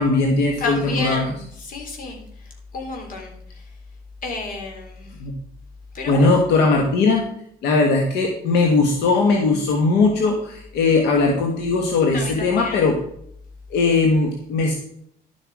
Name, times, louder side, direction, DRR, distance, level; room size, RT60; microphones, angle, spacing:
voice 1, 0.0-1.3 5.2-5.3 6.1-7.3 7.6-13.0 13.7-14.7, left 3 dB, 80° left, 2 dB, 1.6 m, -19 dB
voice 2, 0.6-2.2 2.7-3.3 4.2-5.1 5.9-6.4 12.1-12.9, left 3 dB, 55° left, 2 dB, 3.6 m, -31 dB
11.5 x 7.6 x 4.8 m, 0.70 s
cardioid pair, 110°, 17 cm